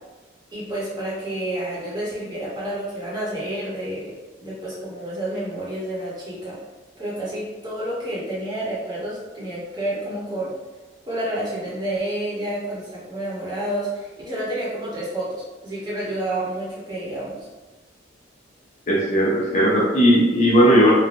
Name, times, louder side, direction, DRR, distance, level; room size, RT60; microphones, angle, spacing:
voice 1, 0.5-6.6 7.0-10.5 11.0-17.5, right 1 dB, 25° right, -7 dB, 0.9 m, -29 dB
voice 2, 18.9-20.9, equal, 40° left, -4 dB, 0.5 m, -17 dB
3.2 x 2.1 x 2.4 m, 1.2 s
head